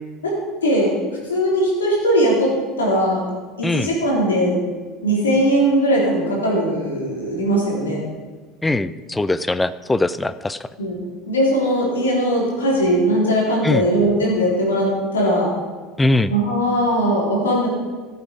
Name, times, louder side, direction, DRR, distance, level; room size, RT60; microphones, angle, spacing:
voice 1, 0.6-3.2 3.6-4.6 5.0-8.0 10.8-11.0 11.3-15.5 16.3-17.7, equal, 75° left, -3 dB, 4.0 m, -19 dB
voice 2, 8.6-10.6 13.6-13.9 16.0-16.3, left 2 dB, 10° left, 15 dB, 0.5 m, -21 dB
14.5 x 8.5 x 5.3 m, 1.3 s
figure-of-eight pair, 70°, 0 cm